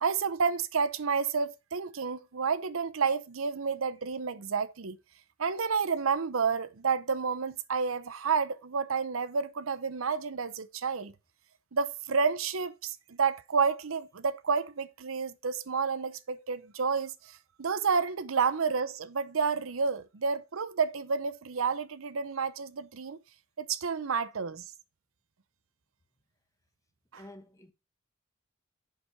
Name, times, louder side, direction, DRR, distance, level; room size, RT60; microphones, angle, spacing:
voice 1, 0.0-5.0 5.4-11.1 11.7-17.1 17.6-23.2 23.6-24.6 27.1-27.2, right 5 dB, 85° right, 0.7 m, -30 dB
voice 2, 27.1-27.7, left 1 dB, 15° left, 0.9 m, -49 dB
8.3 x 6.0 x 4.5 m
head